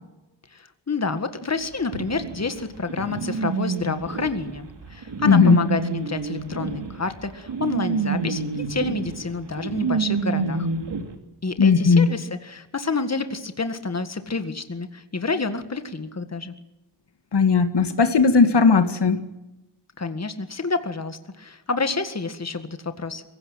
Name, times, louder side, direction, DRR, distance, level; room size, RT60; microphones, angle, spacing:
voice 1, 0.5-10.7 11.4-16.5 20.0-23.2, left 4 dB, 40° left, 9 dB, 1.8 m, -29 dB
sound 1, 1.9-11.0, right 4 dB, 90° right, 3.0 m, -28 dB
voice 2, 5.3-5.6 11.6-12.1 17.3-19.2, left 5 dB, 75° left, 9 dB, 1.8 m, -17 dB
23.5 x 16.5 x 9.1 m, 1.0 s
wide cardioid pair, 95°, 42 cm